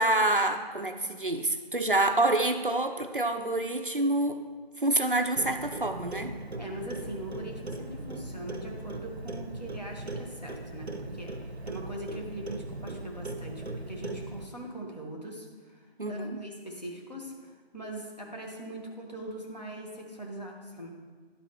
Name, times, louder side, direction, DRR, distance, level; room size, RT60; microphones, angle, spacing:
voice 1, 0.0-4.4 4.8-6.3 16.0-16.4, right 2 dB, 55° right, 6 dB, 0.5 m, -27 dB
Clock, 5.4-14.4, right 2 dB, 90° right, 0.8 m, -39 dB
voice 2, 6.6-20.9, right 1 dB, 40° left, -1 dB, 1.2 m, -41 dB
11.5 x 4.0 x 3.0 m, 1.5 s
figure-of-eight pair, 180°, 31 cm